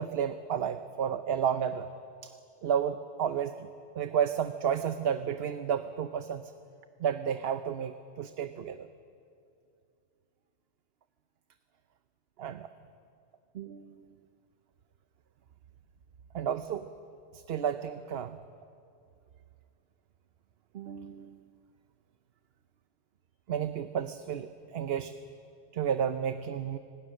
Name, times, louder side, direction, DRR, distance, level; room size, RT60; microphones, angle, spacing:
voice 1, 0.0-1.9 2.2-2.3 2.6-3.7 4.0-6.5 7.0-8.9 12.4-12.7 13.5-14.0 16.3-16.9 17.3-18.4 20.7-21.4 23.5-25.1 25.7-26.8, right 8 dB, 65° right, 10 dB, 0.9 m, -32 dB
30.0 x 25.0 x 6.5 m, 2.5 s
omnidirectional pair, 1.2 m